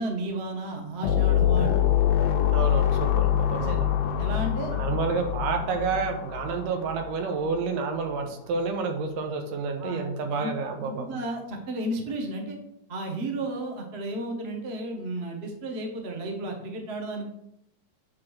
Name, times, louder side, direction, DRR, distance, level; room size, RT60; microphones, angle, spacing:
voice 1, 0.0-2.0 3.1-3.2 3.6-3.8 4.2-4.7 9.8-10.0 10.4-10.5 10.9-12.6 12.9-17.3, right 2 dB, 70° right, 1 dB, 0.6 m, -33 dB
sound 1, 1.0-7.5, left 11 dB, 90° left, 1.3 m, -25 dB
voice 2, 2.5-3.9 4.7-11.1, right 4 dB, 90° right, 4 dB, 2.8 m, -29 dB
9.4 x 3.8 x 6.4 m, 0.80 s
omnidirectional pair, 3.7 m